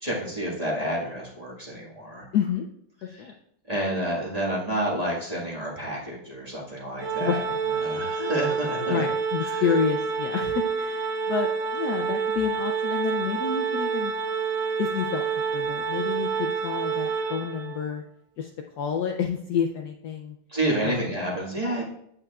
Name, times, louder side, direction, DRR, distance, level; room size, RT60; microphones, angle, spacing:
voice 1, 0.0-2.2 3.1-3.3 3.7-7.4 7.8-9.0 9.4-9.6 20.5-21.8, right 1 dB, 20° right, -5 dB, 1.7 m, -29 dB
voice 2, 2.3-2.7 3.0-3.3 7.2-7.6 8.9-14.1 14.8-18.0 18.4-18.5 18.8-20.4 20.8-21.0, left 8 dB, 70° left, 3 dB, 1.0 m, -29 dB
Organ, 7.0-17.9, right 6 dB, 75° right, 1.6 m, -28 dB
8.8 x 8.0 x 2.4 m, 0.72 s
omnidirectional pair, 2.1 m